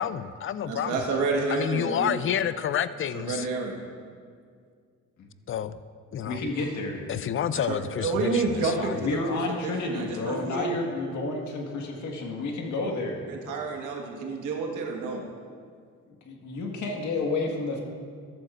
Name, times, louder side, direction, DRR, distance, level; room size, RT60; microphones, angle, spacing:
voice 1, 0.0-1.2 1.5-3.5 5.5-5.8 6.1-6.4 7.1-9.0, left 9 dB, 45° left, 14 dB, 0.5 m, -29 dB
voice 2, 0.7-2.2 3.1-3.8 6.6-6.7 7.7-10.7 13.3-15.2, right 4 dB, 85° right, 1 dB, 1.6 m, -29 dB
voice 3, 6.3-7.0 8.9-13.5 16.3-17.8, left 3 dB, 75° left, 1 dB, 1.8 m, -30 dB
14.0 x 12.0 x 2.5 m, 2.1 s
cardioid pair, 90°, 30 cm